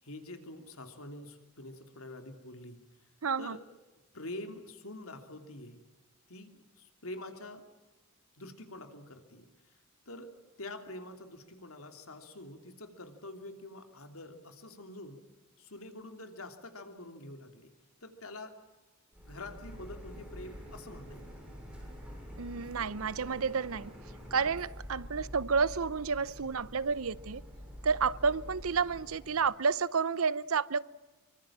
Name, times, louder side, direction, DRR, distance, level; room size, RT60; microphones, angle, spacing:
voice 1, 0.0-2.8 3.4-3.6 4.1-5.8 6.3-7.7 8.3-15.2 15.6-17.7 18.0-18.6 19.2-21.5, left 1 dB, 70° left, 6 dB, 3.1 m, -46 dB
voice 2, 3.2-3.6 22.4-23.9 24.3-27.4 27.8-30.8, right 5 dB, 70° right, 19 dB, 0.7 m, -30 dB
Printer, 19.1-29.5, equal, 5° right, 7.2 m, -47 dB
25.5 x 24.5 x 7.4 m, 1.2 s
head